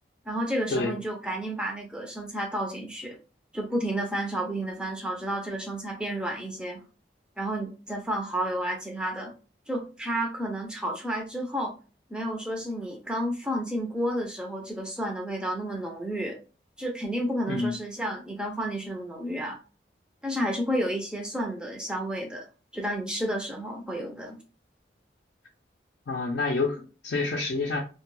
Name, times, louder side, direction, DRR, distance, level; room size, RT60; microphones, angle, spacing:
voice 1, 0.3-3.2 3.5-6.8 7.4-9.3 9.7-11.7 12.1-16.4 16.8-19.6 20.2-22.5 22.7-24.4, right 1 dB, 5° right, 1 dB, 0.4 m, -31 dB
voice 2, 26.1-27.8, left 3 dB, 75° left, 0 dB, 0.5 m, -28 dB
2.2 x 2.2 x 3.0 m, 0.35 s
head